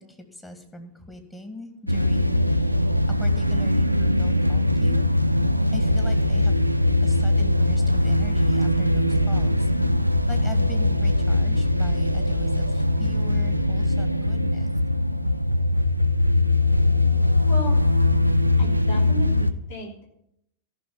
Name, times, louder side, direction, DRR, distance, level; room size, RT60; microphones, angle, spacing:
voice 1, 0.0-2.8 3.1-5.1 5.7-6.6 7.0-9.7 10.3-14.7, left 2 dB, 10° left, 4 dB, 2.4 m, -41 dB
sound 1, 1.9-19.5, left 1 dB, 90° right, 0.5 m, -21 dB
voice 2, 17.5-17.8 18.6-20.0, equal, 55° left, 0 dB, 3.4 m, -34 dB
14.0 x 6.3 x 9.3 m, 0.76 s
figure-of-eight pair, 90°, 0 cm